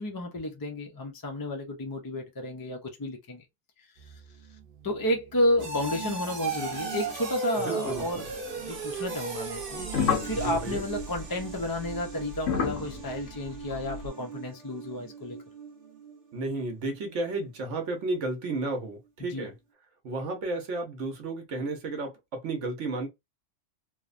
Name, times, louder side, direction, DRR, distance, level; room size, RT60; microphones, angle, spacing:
voice 1, 0.0-3.4 4.8-15.4 19.3-19.5, left 1 dB, 35° left, 0.3 m, -31 dB
sound 1, 4.0-16.7 17.0-17.4 17.8-17.9, right 5 dB, 50° right, 0.9 m, -37 dB
voice 2, 7.5-8.2 10.3-10.8 16.3-19.5 20.0-23.1, right 2 dB, 80° right, 1.1 m, -33 dB
sound 2, 7.8-8.9 9.5-14.1, left 6 dB, 85° left, 1.0 m, -33 dB
3.0 x 2.1 x 2.4 m
omnidirectional pair, 1.2 m